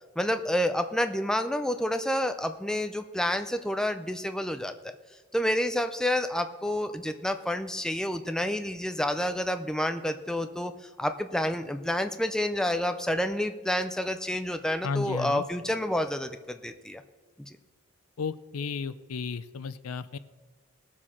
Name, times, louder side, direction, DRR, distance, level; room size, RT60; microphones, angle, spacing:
voice 1, 0.2-4.9 5.3-10.7 11.0-17.0, left 1 dB, 5° left, 7 dB, 0.4 m, -29 dB
voice 2, 14.8-15.4 18.2-20.2, left 5 dB, 75° left, 14 dB, 0.5 m, -33 dB
19.5 x 7.4 x 4.3 m, 1.4 s
head